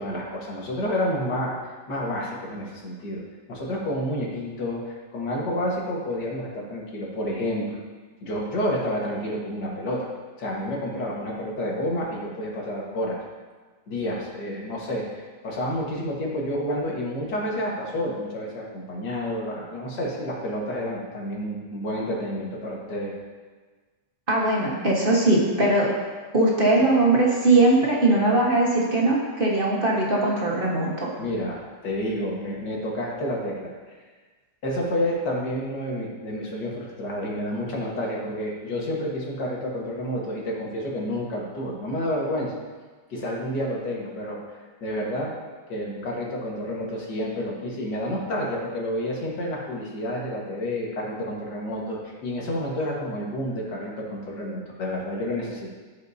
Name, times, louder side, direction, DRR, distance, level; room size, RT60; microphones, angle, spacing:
voice 1, 0.0-3.2 3.5-7.8 8.2-10.1 10.4-13.2 13.9-23.1 31.2-31.6 31.8-33.7 34.6-42.5 43.1-44.4 44.8-45.3 45.7-55.7, equal, 80° left, -3 dB, 2.2 m, -29 dB
voice 2, 24.3-25.9 26.3-31.1, right 2 dB, 35° right, -4 dB, 1.4 m, -20 dB
16.0 x 5.3 x 2.7 m, 1.4 s
omnidirectional pair, 1.8 m